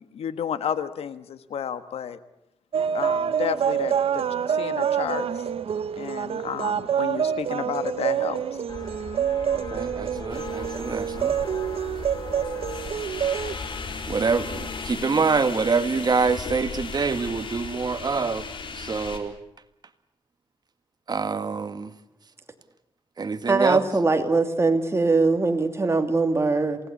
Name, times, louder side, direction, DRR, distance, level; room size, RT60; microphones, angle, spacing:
voice 1, 0.0-2.2 2.9-5.3 6.0-8.4, left 8 dB, 90° left, 12 dB, 1.4 m, -31 dB
sound 1, 2.7-13.5, right 8 dB, 75° right, 0.9 m, -27 dB
sound 2, 8.7-14.9, left 4 dB, 40° left, 2.6 m, -39 dB
voice 2, 9.5-11.4 14.1-18.5 18.8-19.3 21.1-21.9 23.2-23.8, right 4 dB, 45° right, 10 dB, 1.7 m, -26 dB
sound 3, 10.3-19.2, left 5 dB, 55° left, 4.2 m, -37 dB
voice 3, 23.5-26.8, right 3 dB, 25° right, 6 dB, 2.7 m, -21 dB
27.5 x 18.5 x 8.5 m, 0.87 s
cardioid pair, 95°, 10 cm